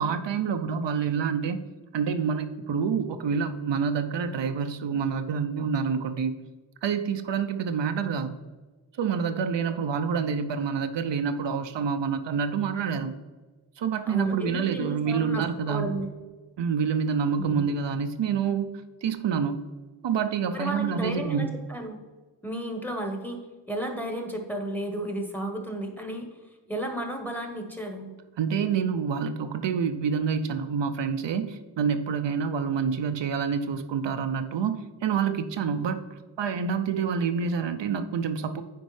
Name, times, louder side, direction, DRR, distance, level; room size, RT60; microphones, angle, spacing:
voice 1, 0.0-1.6 1.9-6.3 6.8-8.4 9.0-13.1 13.8-15.9 16.6-18.7 19.0-19.6 20.0-21.5 28.4-34.8 35.0-36.0 36.4-38.6, right 6 dB, 80° right, 8 dB, 0.6 m, -27 dB
voice 2, 14.1-16.1 17.4-17.6 20.5-22.0 22.4-23.4 23.7-26.3 26.7-28.1, right 1 dB, 5° left, 3 dB, 1.0 m, -33 dB
9.4 x 4.4 x 3.2 m, 1.2 s
wide cardioid pair, 95°, 43 cm